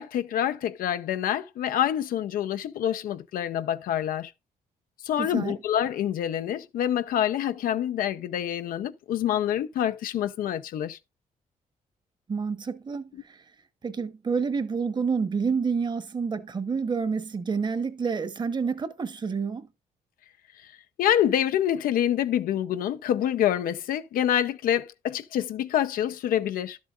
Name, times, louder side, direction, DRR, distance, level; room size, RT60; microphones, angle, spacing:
voice 1, 0.0-4.3 5.0-11.0 21.0-26.8, left 10 dB, 85° left, 0.7 m, -26 dB
voice 2, 5.2-5.6 12.3-13.4 13.8-19.7, right 5 dB, 30° right, 1.0 m, -28 dB
12.0 x 7.5 x 2.4 m
cardioid pair, 130°, 14 cm